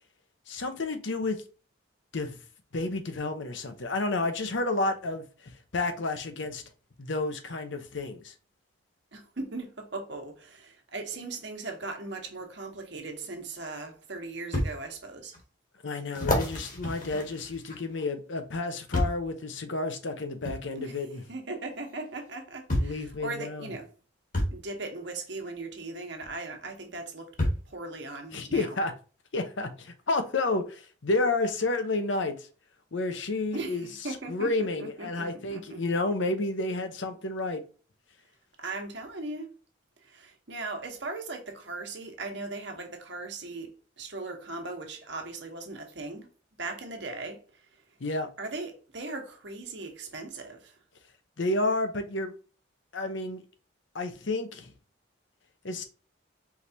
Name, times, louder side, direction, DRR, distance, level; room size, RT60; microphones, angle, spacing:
voice 1, 0.5-1.4 2.1-2.4 2.7-6.6 7.0-8.3 15.8-21.2 22.8-23.7 28.3-28.9 29.3-32.5 32.9-33.9 34.3-37.6 48.0-48.3 51.4-52.3 52.9-53.4 53.9-54.7 55.6-55.8, left 2 dB, 70° left, 0.8 m, -30 dB
voice 2, 9.1-15.3 20.8-21.0 21.3-23.9 24.5-27.3 27.6-28.7 33.5-35.8 38.6-39.5 40.0-46.3 46.6-47.7 48.4-50.8, right 3 dB, 65° right, 1.1 m, -38 dB
sound 1, 13.4-13.5 14.5-14.7 15.3-15.4 16.1-18.0 18.9-19.3 20.4-20.6 21.9-22.0 22.7-23.0 24.3-24.6 26.2-26.3 27.4-27.7 28.5-28.6, left 1 dB, 40° left, 1.3 m, -29 dB
4.6 x 3.3 x 2.8 m
head